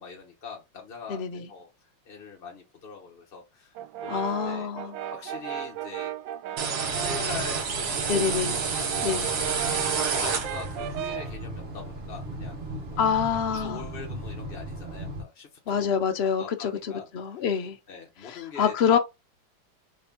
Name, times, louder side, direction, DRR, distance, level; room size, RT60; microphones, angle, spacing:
voice 1, 0.0-1.7 2.0-3.7 4.0-4.7 5.1-6.1 6.8-8.5 9.0-9.4 10.1-12.6 12.9-13.1 13.5-16.0 16.4-17.4 17.9-19.0, left 5 dB, 40° left, 0.9 m, -42 dB
voice 2, 1.1-1.5 4.1-4.9 8.1-8.6 9.0-9.3 13.0-13.8 15.7-17.8 18.3-19.0, left 7 dB, 75° left, 0.5 m, -26 dB
Brass instrument, 3.8-7.4 7.8-11.4, right 11 dB, 80° right, 1.3 m, -36 dB
sound 1, 6.6-10.9, right 5 dB, 60° right, 1.5 m, -29 dB
sound 2, 6.8-15.2, right 1 dB, 40° right, 1.2 m, -38 dB
4.3 x 3.2 x 3.4 m
omnidirectional pair, 2.1 m